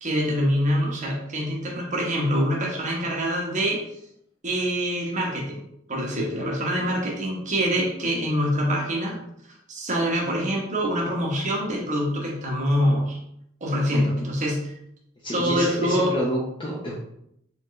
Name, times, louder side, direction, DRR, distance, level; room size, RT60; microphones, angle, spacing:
voice 1, 0.0-3.8 4.4-5.6 5.9-9.1 9.7-13.2 13.6-14.7 15.3-16.1, equal, 35° right, -2 dB, 1.0 m, -25 dB
voice 2, 15.2-16.9, right 1 dB, 25° left, -5 dB, 0.7 m, -28 dB
4.6 x 3.7 x 3.1 m, 0.75 s
head